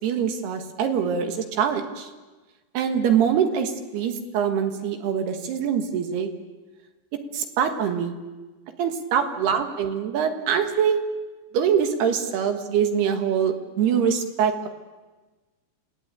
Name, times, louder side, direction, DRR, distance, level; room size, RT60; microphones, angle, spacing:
voice 1, 0.0-2.1 2.7-6.3 7.3-8.1 8.8-11.0 11.5-14.7, right 7 dB, 65° right, 6 dB, 3.3 m, -24 dB
28.5 x 18.5 x 9.0 m, 1.2 s
omnidirectional pair, 5.7 m